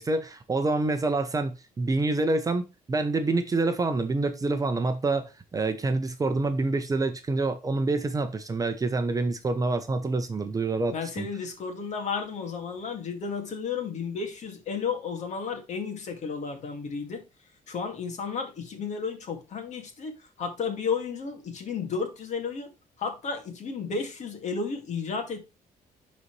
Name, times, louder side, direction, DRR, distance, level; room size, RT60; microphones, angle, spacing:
voice 1, 0.0-11.3, right 3 dB, 20° right, 0.8 m, -27 dB
voice 2, 10.9-17.2 17.7-22.7 23.0-25.4, left 5 dB, 50° left, 2.1 m, -33 dB
11.0 x 4.2 x 3.2 m
cardioid pair, 135°, 16 cm